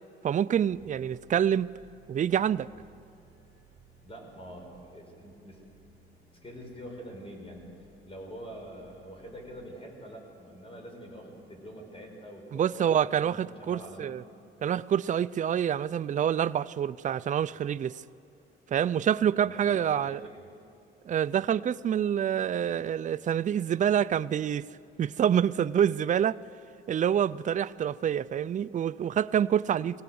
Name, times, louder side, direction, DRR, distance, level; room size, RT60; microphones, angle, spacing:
voice 1, 0.2-1.7 2.1-2.7 12.5-14.2 14.6-17.9 18.7-20.2 21.1-24.7 25.0-26.4 26.9-30.0, right 9 dB, 35° right, 0.4 m, -27 dB
sound 1, 0.7-9.5, right 3 dB, 10° right, 5.4 m, -60 dB
voice 2, 4.0-5.6 6.3-7.7 8.0-14.1 19.4-20.5, equal, 25° left, 5.4 m, -45 dB
23.0 x 17.5 x 7.8 m
cardioid pair, 115°, 21 cm